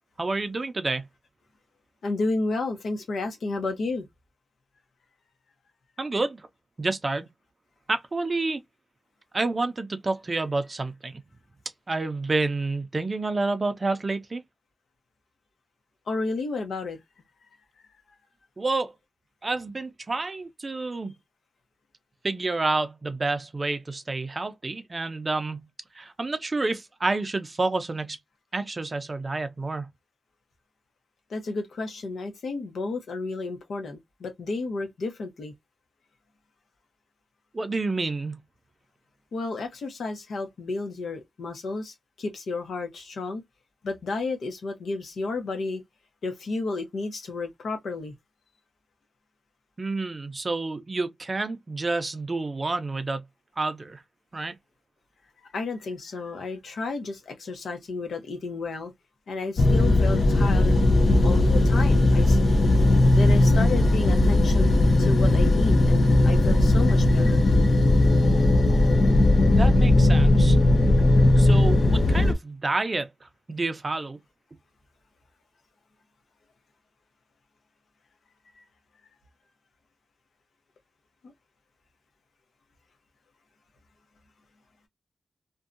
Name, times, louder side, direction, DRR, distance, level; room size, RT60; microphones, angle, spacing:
voice 1, 0.2-1.0 6.0-6.5 6.8-7.3 7.9-8.6 9.3-11.2 11.9-14.4 18.6-18.9 19.4-21.1 22.2-25.6 25.9-28.2 28.5-29.9 37.5-38.4 49.8-53.2 53.6-54.0 54.3-54.5 69.5-70.6 71.4-74.2, right 3 dB, 30° right, 0.5 m, -29 dB
voice 2, 2.0-4.1 16.1-17.0 31.3-35.5 39.3-43.4 43.8-45.8 46.2-48.1 55.5-58.9 59.3-60.8 61.2-62.4 63.1-67.4 68.2-68.9 78.6-78.7 81.2-81.3, left 3 dB, 85° left, 0.8 m, -32 dB
sound 1, 59.6-72.3, left 2 dB, 50° left, 0.4 m, -18 dB
2.6 x 2.2 x 2.4 m
wide cardioid pair, 130°, 0 cm